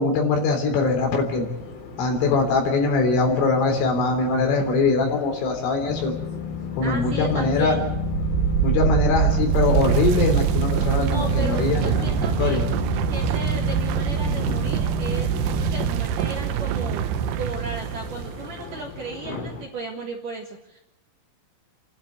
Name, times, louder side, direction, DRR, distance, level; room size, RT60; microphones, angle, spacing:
voice 1, 0.0-1.5 2.0-6.2 6.8-7.8 8.6-12.1 12.4-12.6 14.3-14.7 19.3-19.5, left 3 dB, 70° left, 3 dB, 6.0 m, -22 dB
sound 1, 0.8-19.7, left 3 dB, 90° left, 6.3 m, -41 dB
sound 2, 5.9-15.9, left 5 dB, 55° left, 3.1 m, -29 dB
voice 2, 6.8-7.9 11.0-12.6 13.1-17.1 17.4-20.8, right 3 dB, 55° right, 1 dB, 2.5 m, -34 dB
sound 3, 7.9-18.6, right 11 dB, 80° right, 2.4 m, -24 dB
30.0 x 11.5 x 9.3 m, 0.89 s
omnidirectional pair, 6.0 m